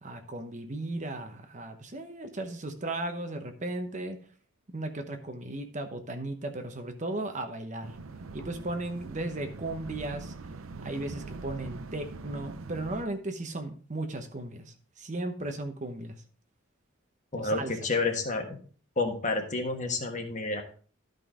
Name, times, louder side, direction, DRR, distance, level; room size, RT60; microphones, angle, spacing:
voice 1, 0.0-4.2 4.7-7.9 8.3-10.3 10.8-16.2 17.3-17.7, right 2 dB, 35° right, 6 dB, 0.9 m, -36 dB
sound 1, 7.8-13.0, right 3 dB, 85° right, 0.6 m, -42 dB
voice 2, 17.3-18.6 19.0-20.6, left 3 dB, 35° left, 4 dB, 1.5 m, -29 dB
12.5 x 5.3 x 3.7 m, 0.41 s
head